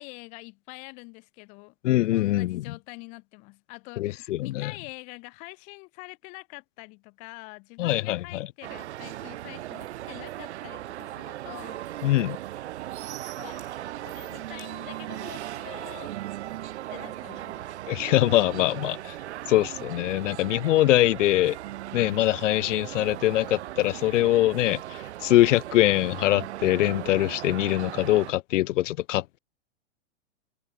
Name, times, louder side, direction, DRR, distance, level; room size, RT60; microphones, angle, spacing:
voice 1, 0.0-1.7 2.1-11.8 13.4-16.1 16.9-17.7, left 29 dB, 20° left, 0.6 m, -45 dB
voice 2, 1.8-2.6 4.0-4.7 7.8-8.5 12.0-12.4 17.9-19.2 19.5-21.6 21.9-24.8 25.2-29.4, left 15 dB, 70° left, 0.5 m, -23 dB
sound 1, 8.6-28.3, right 14 dB, 60° right, 1.4 m, -38 dB
supercardioid pair, 160°, 38 cm